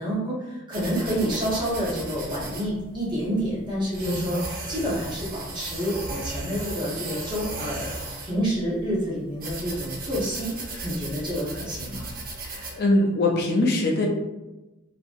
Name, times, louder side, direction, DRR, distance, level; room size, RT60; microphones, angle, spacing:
voice 1, 0.0-4.4 4.7-7.9 8.2-10.5 10.8-12.0, equal, 20° right, -6 dB, 0.9 m, -28 dB
soft drawing, 0.7-12.7, right 2 dB, 45° right, 0.5 m, -36 dB
voice 2, 12.4-14.1, left 2 dB, 50° left, -1 dB, 0.5 m, -23 dB
2.8 x 2.5 x 2.5 m, 1.0 s
head